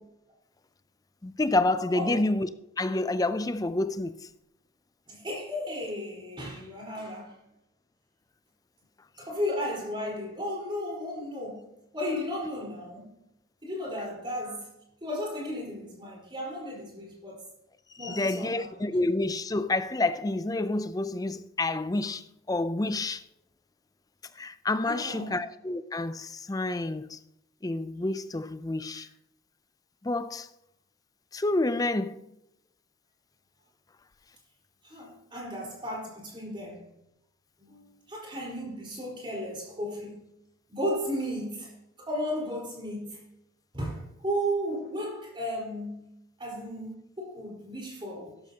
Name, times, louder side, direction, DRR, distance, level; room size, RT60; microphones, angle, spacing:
voice 1, 1.2-2.5 2.8-4.3 18.0-23.2 24.4-27.2 27.6-29.1 30.0-30.5 31.3-32.2, left 2 dB, 20° left, 0.4 m, -28 dB
voice 2, 5.1-7.3 9.2-11.7 11.9-13.1 13.6-14.7 15.0-17.4 18.0-18.9 24.8-25.4 34.8-36.9 37.6-40.2 40.7-41.7 42.0-43.2 43.7-46.0 46.4-48.3, equal, 25° right, 4.4 m, -34 dB
13.0 x 11.5 x 2.9 m
head